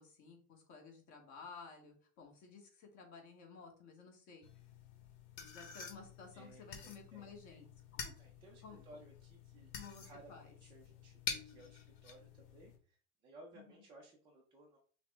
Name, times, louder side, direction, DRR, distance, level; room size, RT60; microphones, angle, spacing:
voice 1, 0.0-4.5 5.4-7.6 7.9-8.2 8.6-8.9 9.7-10.5 13.5-13.8, left 5 dB, 35° left, 2 dB, 1.3 m, -54 dB
sound 1, 4.4-12.8, left 6 dB, 60° left, 1.3 m, -48 dB
voice 2, 6.3-7.6 8.2-9.7 10.0-13.0 13.2-14.8, right 2 dB, 10° right, -4 dB, 0.4 m, -59 dB
5.7 x 2.1 x 3.5 m, 0.41 s
supercardioid pair, 145°, 47 cm